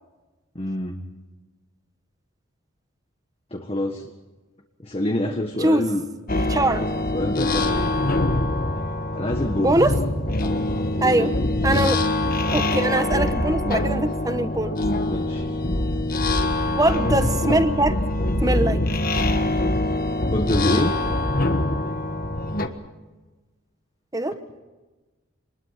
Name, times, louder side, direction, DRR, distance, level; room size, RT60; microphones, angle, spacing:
voice 1, 0.5-1.0 3.5-4.1 4.8-6.1 6.5-8.1 9.1-9.8 10.4-11.5 15.1-15.5 20.3-21.0, left 1 dB, 30° left, 3 dB, 1.5 m, -27 dB
voice 2, 5.2-5.9 6.5-6.8 9.6-9.9 11.0-11.3 11.6-12.0 12.5-14.8 16.7-18.0 18.4-18.8 24.1-24.4, right 1 dB, 15° right, 10 dB, 1.1 m, -22 dB
sound 1, 6.3-22.7, left 1 dB, 45° left, 1.4 m, -24 dB
26.5 x 20.5 x 5.9 m, 1.2 s
head